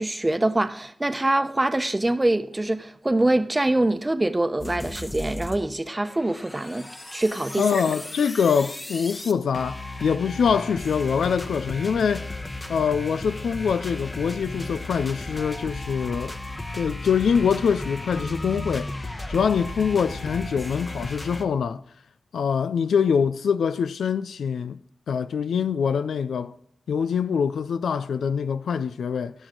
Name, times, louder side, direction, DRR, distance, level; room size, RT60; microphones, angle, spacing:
voice 1, 0.0-7.8, right 1 dB, 25° right, 0.9 m, -24 dB
sound 1, 4.6-5.6 5.9-21.4, left 2 dB, 30° left, 1.1 m, -35 dB
voice 2, 7.6-12.3 12.7-16.4 16.8-18.9 19.3-21.8 22.3-24.8 25.1-26.5 26.9-29.3, left 6 dB, 90° left, 0.4 m, -24 dB
16.0 x 6.3 x 3.8 m
cardioid pair, 45°, 0 cm